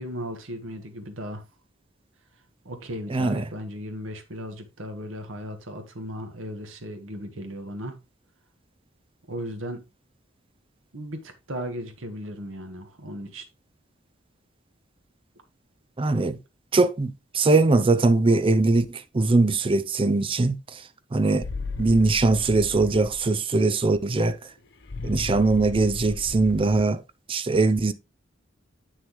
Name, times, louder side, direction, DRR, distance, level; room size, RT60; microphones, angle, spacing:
voice 1, 0.0-1.4 2.6-8.0 9.3-9.8 10.9-13.4, equal, 75° right, 1.5 m, -36 dB
voice 2, 3.1-3.4 16.0-16.4 16.7-20.8 21.1-21.5 21.8-24.4 25.0-27.0 27.3-27.9, right 3 dB, 25° right, 0.5 m, -21 dB
sound 1, 21.4-23.2 24.9-26.9, left 3 dB, 60° left, 0.8 m, -35 dB
7.8 x 6.2 x 3.1 m
head